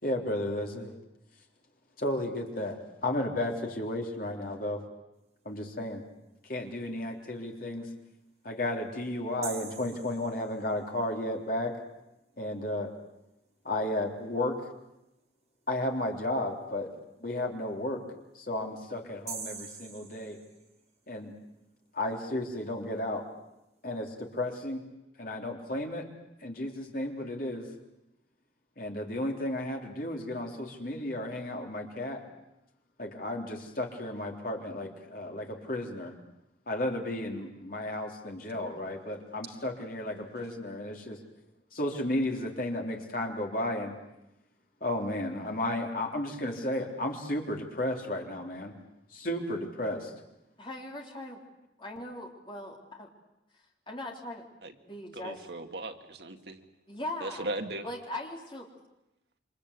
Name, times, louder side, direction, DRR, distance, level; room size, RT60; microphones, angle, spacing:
voice 1, 0.0-0.9 2.0-4.8 5.5-6.0 6.5-7.9 8.4-11.7 12.4-12.9 13.7-14.6 15.7-16.9 17.2-18.0 18.4-20.4 21.1-21.3 21.9-23.2 23.8-24.8 25.2-26.1 26.4-27.7 28.8-32.2 33.0-36.1 36.7-41.2 41.7-44.0 44.8-48.7 49.1-50.1, left 1 dB, 50° left, 2 dB, 3.6 m, -33 dB
sound 1, 9.4-10.9 19.3-21.0, right 6 dB, 35° right, 4.9 m, -44 dB
voice 2, 50.6-51.4 51.8-53.1 53.9-54.4 54.8-55.5 56.9-57.5 57.8-58.6, left 1 dB, 25° left, 0 dB, 3.9 m, -40 dB
voice 3, 55.1-56.6 57.2-57.9, right 2 dB, 60° right, 6 dB, 2.0 m, -37 dB
28.0 x 25.0 x 8.4 m, 0.90 s
head